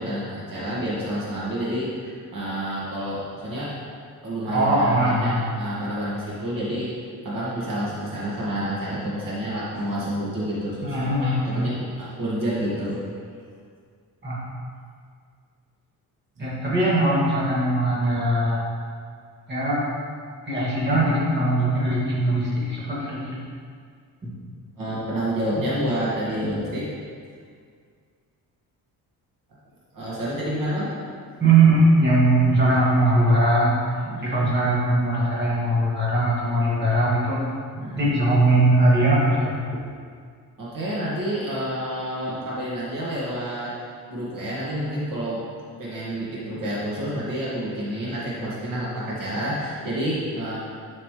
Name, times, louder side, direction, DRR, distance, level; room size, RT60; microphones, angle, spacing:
voice 1, 0.0-3.7 4.2-6.9 7.2-13.0 16.4-16.5 24.8-26.9 29.9-30.9 34.0-34.5 37.8-38.1 40.6-43.7 44.1-45.4 45.8-50.6, equal, 55° right, -7 dB, 2.1 m, -29 dB
voice 2, 4.5-5.6 10.8-11.6 14.2-14.4 16.4-18.7 19.5-19.8 20.5-23.4 26.4-26.5 31.4-33.7 34.2-37.4 37.9-39.5, right 1 dB, 30° right, -8 dB, 2.3 m, -20 dB
11.0 x 5.9 x 3.3 m, 2.1 s
cardioid pair, 145°, 39 cm